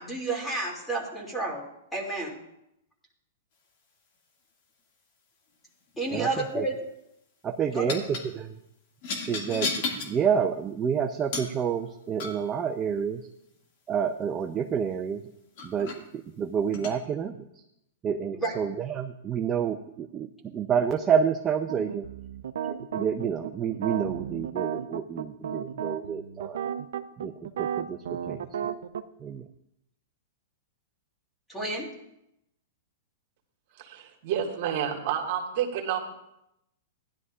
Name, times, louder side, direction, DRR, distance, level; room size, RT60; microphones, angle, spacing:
voice 1, 0.0-1.6 1.9-2.4 6.0-6.8 7.7-8.0 18.3-18.6 31.5-31.9, right 2 dB, 5° left, -2 dB, 2.5 m, -31 dB
sound 1, 5.9-6.3 7.9-8.3 9.0-10.2 11.3-11.6 12.2-12.5 14.9-15.0 15.6-16.0 16.7-17.0, left 4 dB, 50° left, 2.1 m, -33 dB
voice 2, 6.1-6.7 7.4-8.6 9.3-9.7 10.0-13.3 13.9-15.2 15.6-17.6 18.0-22.1 22.7-26.6 27.2-28.7 29.2-29.5, right 7 dB, 20° right, 3 dB, 0.6 m, -29 dB
sound 2, 21.7-29.0, right 8 dB, 80° right, 0.6 m, -33 dB
voice 3, 33.8-36.0, right 9 dB, 55° right, 1 dB, 1.9 m, -29 dB
16.0 x 11.0 x 2.5 m, 0.80 s
hypercardioid pair, 145°, 0 cm